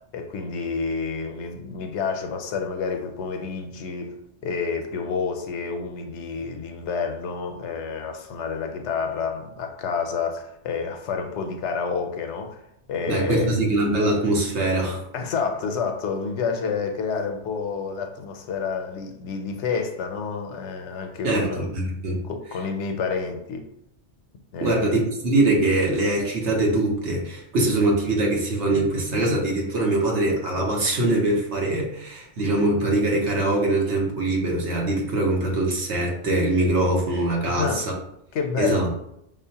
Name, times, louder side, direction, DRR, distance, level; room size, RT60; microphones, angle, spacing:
voice 1, 0.0-4.2 4.4-12.6 12.9-13.6 15.1-21.7 22.2-23.7 24.5-24.9 37.5-37.9 38.3-38.9, left 5 dB, 85° left, 5 dB, 0.9 m, -29 dB
voice 2, 13.1-15.0 21.2-22.2 24.6-37.8 38.6-38.8, right 2 dB, 75° right, -1 dB, 1.3 m, -23 dB
5.3 x 2.1 x 2.8 m, 0.77 s
omnidirectional pair, 1.2 m